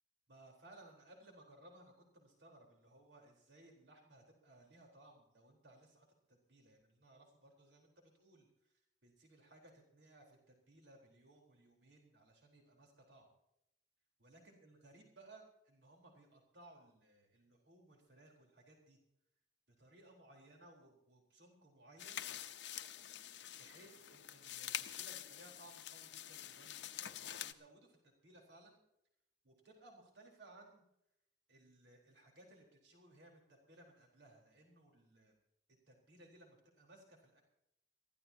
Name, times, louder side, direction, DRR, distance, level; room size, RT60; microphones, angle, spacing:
voice 1, 0.3-13.3 14.2-19.0 19.7-22.2 23.6-28.8 29.4-30.9 31.5-35.4 35.7-37.4, right 1 dB, 80° right, 0 dB, 4.0 m, -62 dB
sound 1, 22.0-27.5, left 11 dB, 85° left, 0.8 m, -46 dB
22.5 x 15.5 x 2.9 m, 0.80 s
head